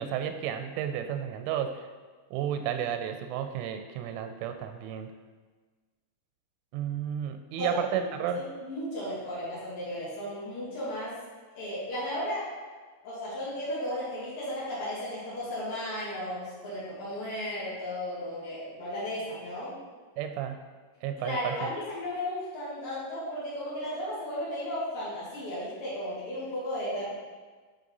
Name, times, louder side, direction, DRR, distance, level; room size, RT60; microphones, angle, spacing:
voice 1, 0.0-1.9 2.3-5.1 6.7-8.4 20.2-20.6 21.0-21.7, right 9 dB, 85° right, 7 dB, 3.1 m, -32 dB
voice 2, 8.4-11.2 11.5-12.5 13.0-19.7 21.2-27.1, left 1 dB, 50° left, -10 dB, 3.5 m, -34 dB
10.0 x 4.2 x 3.9 m, 1.4 s
omnidirectional pair, 5.6 m